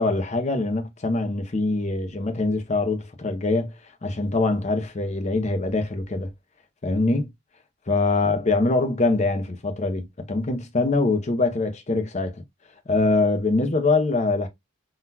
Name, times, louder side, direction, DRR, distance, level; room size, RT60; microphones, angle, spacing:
voice 1, 0.0-3.7 4.0-6.3 6.8-7.3 7.9-12.4 12.9-14.5, left 3 dB, 30° left, 0.6 m, -23 dB
3.8 x 2.2 x 2.7 m
head